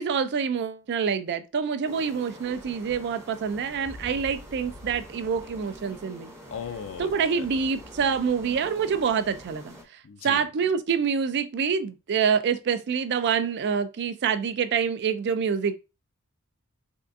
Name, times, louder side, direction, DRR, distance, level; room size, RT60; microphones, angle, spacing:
voice 1, 0.0-6.3 7.0-15.8, right 6 dB, 50° right, 0.4 m, -26 dB
sound 1, 1.8-9.8, equal, 15° right, 0.7 m, -45 dB
voice 2, 6.5-7.5 10.0-10.5, left 7 dB, 60° left, 0.4 m, -37 dB
3.5 x 2.4 x 2.5 m
head